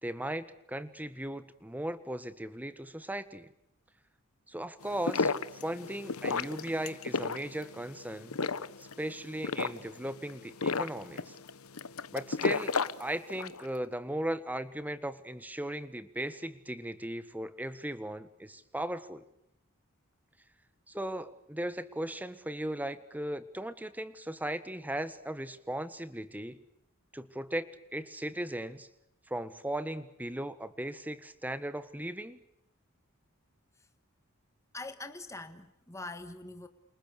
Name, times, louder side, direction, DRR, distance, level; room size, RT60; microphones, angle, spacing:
voice 1, 0.0-3.5 4.5-8.4 8.8-11.3 12.1-12.7 13.0-19.2 20.9-26.6 27.1-28.9 29.3-32.4, right 1 dB, 10° right, 1.5 m, -37 dB
sound 1, 4.8-13.6, left 4 dB, 75° left, 1.1 m, -34 dB
voice 2, 34.7-36.7, left 2 dB, 15° left, 1.7 m, -43 dB
29.5 x 27.5 x 6.7 m
head